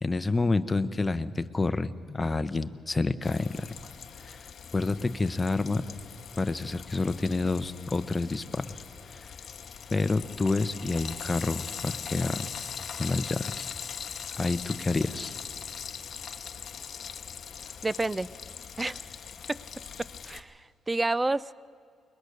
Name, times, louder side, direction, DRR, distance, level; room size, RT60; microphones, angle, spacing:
voice 1, 0.0-3.7 4.2-4.4 4.7-5.8 6.4-8.7 9.1-9.3 9.9-12.5 12.9-13.7 14.4-15.3, left 3 dB, 20° left, 11 dB, 0.8 m, -28 dB
Frying (food), 3.2-20.4, left 7 dB, 55° left, 1.0 m, -41 dB
voice 2, 17.8-18.3 18.8-19.1 19.5-19.6 20.2-21.5, right 2 dB, 15° right, 21 dB, 0.4 m, -29 dB
21.5 x 21.0 x 6.7 m, 2.4 s
cardioid pair, 90°, 0 cm